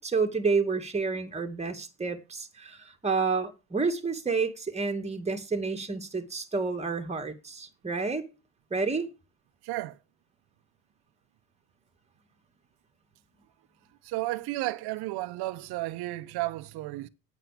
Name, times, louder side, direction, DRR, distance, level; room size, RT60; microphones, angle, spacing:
voice 1, 0.0-8.3 8.7-9.1, right 4 dB, 15° right, 2.4 m, -29 dB
voice 2, 9.6-10.0 14.0-17.1, right 18 dB, 65° right, 1.0 m, -33 dB
9.0 x 8.1 x 8.7 m
supercardioid pair, 85°, 42 cm